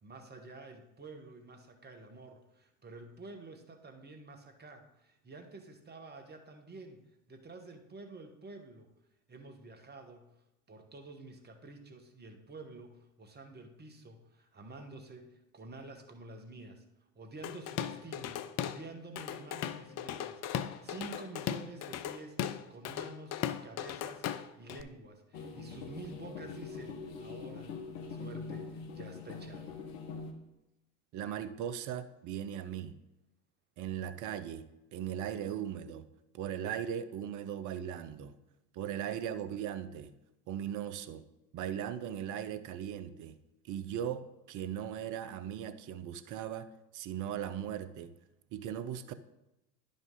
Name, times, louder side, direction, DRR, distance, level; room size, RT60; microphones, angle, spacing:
voice 1, 0.0-7.0 7.3-8.9 9.3-10.3 10.7-16.8 17.1-29.8, right 3 dB, 20° right, 5 dB, 1.2 m, -49 dB
Drum kit / Drum, 17.4-18.8 19.2-24.8, left 10 dB, 35° left, 0.5 m, -37 dB
sound 1, 25.3-30.3, left 4 dB, 60° left, 1.3 m, -43 dB
voice 2, 31.1-33.0 33.8-34.6 34.9-36.0 36.3-38.4 38.7-40.1 40.5-41.2 41.5-43.4 43.7-46.7 46.9-48.1 48.5-49.1, right 9 dB, 40° right, 12 dB, 0.7 m, -38 dB
11.0 x 5.4 x 3.8 m, 0.92 s
hypercardioid pair, 75°, 47 cm